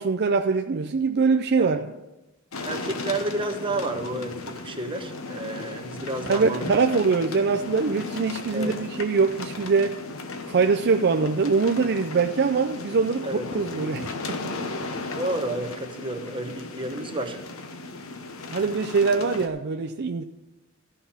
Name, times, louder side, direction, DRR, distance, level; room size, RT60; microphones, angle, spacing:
voice 1, 0.0-1.9 6.3-10.0 10.5-13.3 13.5-14.4 18.5-20.2, right 4 dB, 55° right, 0.5 m, -23 dB
sound 1, 2.5-19.5, left 3 dB, 85° left, 1.1 m, -36 dB
voice 2, 2.6-6.6 8.5-8.7 13.2-13.4 15.2-17.4, right 2 dB, 25° right, 1.1 m, -31 dB
14.0 x 5.6 x 7.2 m
head